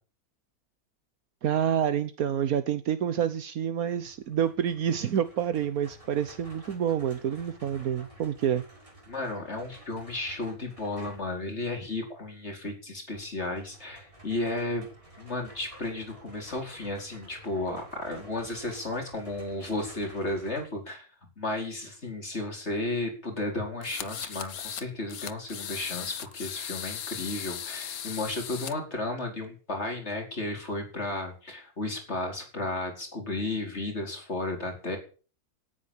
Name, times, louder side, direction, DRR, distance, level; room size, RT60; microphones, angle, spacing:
voice 1, 1.4-8.6, right 9 dB, 75° right, 1.4 m, -28 dB
sound 1, 3.9-11.4 13.1-20.6, equal, 20° right, 6.8 m, -52 dB
voice 2, 9.1-14.9 15.2-21.1 21.4-35.0, left 2 dB, 45° left, 5.1 m, -33 dB
sound 2, 23.8-24.8 25.1-28.7, left 9 dB, 80° left, 1.5 m, -37 dB
18.0 x 9.7 x 7.3 m
omnidirectional pair, 1.5 m